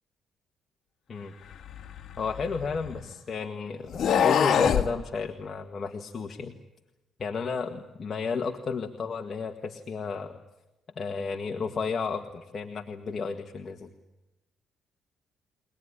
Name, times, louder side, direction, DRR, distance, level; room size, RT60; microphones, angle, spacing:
sound 1, 1.6-3.1 3.9-4.9, left 8 dB, 65° left, 1.8 m, -25 dB
voice 1, 2.2-6.5 7.2-10.4 10.9-13.9, left 5 dB, 45° left, 4 dB, 1.7 m, -32 dB
24.0 x 19.0 x 10.0 m, 0.99 s
cardioid pair, 90°, 0 cm